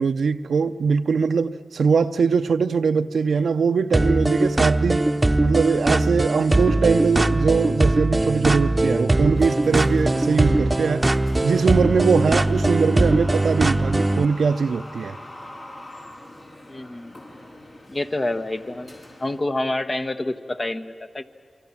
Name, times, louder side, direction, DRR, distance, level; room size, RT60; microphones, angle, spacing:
voice 1, 0.0-5.1 5.4-11.1 11.4-15.2, right 5 dB, 75° right, 0.6 m, -21 dB
sound 1, 3.9-14.2, right 2 dB, 25° right, 0.9 m, -21 dB
sound 2, 9.3-19.4, left 1 dB, 55° left, 5.9 m, -42 dB
voice 2, 16.7-17.1 17.9-18.9 19.2-21.2, left 2 dB, 40° left, 1.2 m, -27 dB
28.0 x 24.0 x 7.3 m
cardioid pair, 40°, 0 cm